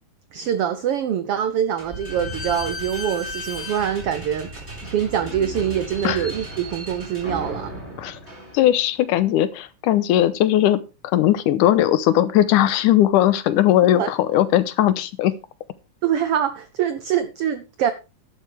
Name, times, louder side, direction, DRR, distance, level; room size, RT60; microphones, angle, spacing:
voice 1, 0.3-4.5 4.8-7.7 13.8-14.1 16.0-17.9, right 9 dB, 80° right, 1.3 m, -24 dB
Slam / Squeak, 1.8-9.0, equal, 20° right, 6.6 m, -35 dB
voice 2, 8.5-10.8 11.1-15.3, left 12 dB, 80° left, 2.3 m, -18 dB
11.5 x 11.0 x 3.4 m
omnidirectional pair, 3.6 m